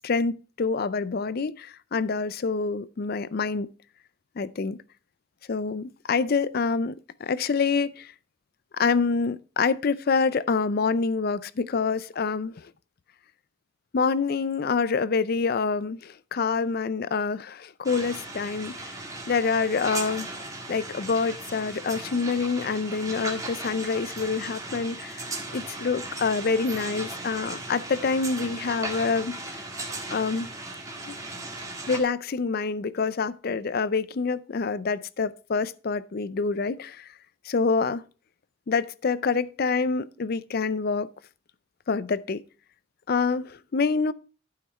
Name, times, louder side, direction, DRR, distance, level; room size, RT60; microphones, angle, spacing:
voice 1, 0.0-3.7 4.4-4.8 5.5-6.9 7.2-8.1 8.7-12.7 13.9-18.9 19.3-20.3 20.7-25.2 25.5-29.6 30.1-30.5 31.1-31.2 31.9-37.1 37.5-38.0 38.7-41.1 41.9-42.4 43.1-44.1, left 4 dB, 50° left, 0.4 m, -26 dB
sound 1, 17.8-32.0, right 2 dB, 15° right, 1.6 m, -37 dB
11.5 x 5.8 x 4.3 m
head